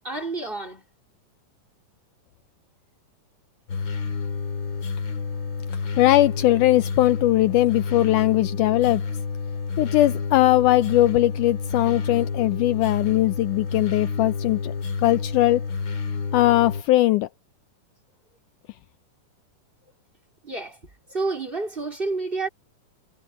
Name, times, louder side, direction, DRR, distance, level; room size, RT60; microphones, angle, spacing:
voice 1, 0.0-0.8 20.4-20.8 21.1-22.5, right 3 dB, 15° right, 2.8 m, -29 dB
sound 1, 3.7-16.8, left 4 dB, 40° left, 2.2 m, -29 dB
voice 2, 6.0-9.0 9.8-14.7 15.0-15.6 16.3-17.3, left 16 dB, 80° left, 2.0 m, -20 dB
omnidirectional pair, 3.9 m